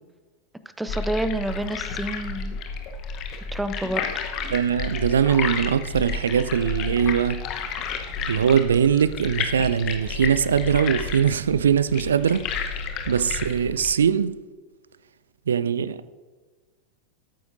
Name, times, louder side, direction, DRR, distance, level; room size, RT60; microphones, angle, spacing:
voice 1, 0.8-2.6 3.5-4.1, right 1 dB, 5° right, 0.5 m, -28 dB
sound 1, 0.9-13.9, left 5 dB, 35° left, 1.0 m, -31 dB
voice 2, 4.5-7.4 8.3-12.5 13.1-14.4 15.5-16.1, right 8 dB, 65° right, 0.3 m, -21 dB
13.5 x 9.2 x 2.7 m
figure-of-eight pair, 90°, 0 cm